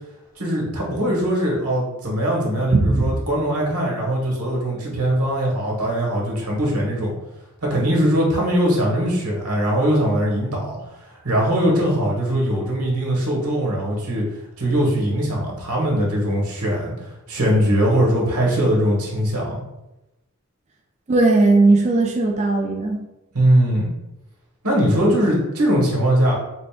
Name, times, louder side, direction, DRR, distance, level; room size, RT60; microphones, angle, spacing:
voice 1, 0.4-7.1 7.6-10.8 11.2-14.2 14.6-19.6 23.3-23.9 24.6-26.3, equal, 90° right, -3 dB, 1.4 m, -21 dB
voice 2, 2.7-3.1 21.1-23.0, right 2 dB, 30° right, 0 dB, 0.4 m, -17 dB
3.8 x 3.5 x 2.4 m, 0.95 s
head